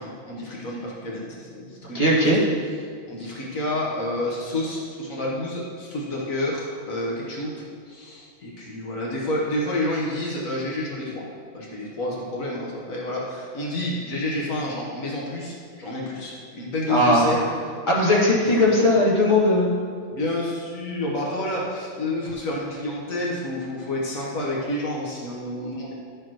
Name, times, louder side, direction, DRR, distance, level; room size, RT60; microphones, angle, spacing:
voice 1, 0.0-2.3 3.1-7.5 7.9-11.2 11.5-17.5 18.4-19.0 20.1-25.9, left 1 dB, 85° left, -4 dB, 1.7 m, -29 dB
voice 2, 1.9-2.4 16.9-17.3 17.9-19.7, left 1 dB, 35° left, -7 dB, 2.2 m, -18 dB
12.0 x 6.8 x 3.1 m, 2.2 s
omnidirectional pair, 1.4 m